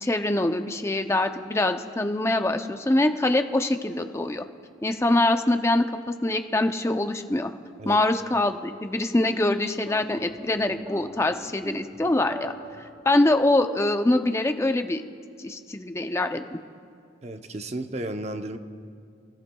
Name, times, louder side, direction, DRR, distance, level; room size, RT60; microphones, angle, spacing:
voice 1, 0.0-4.4 4.8-5.9 6.2-7.5 7.8-15.0 15.4-16.6, left 2 dB, 15° left, 7 dB, 0.4 m, -24 dB
sound 1, 9.8-13.3, equal, 15° right, 2.4 m, -42 dB
voice 2, 17.2-18.6, right 1 dB, 35° right, 7 dB, 0.6 m, -33 dB
30.0 x 14.5 x 2.3 m, 2.3 s
head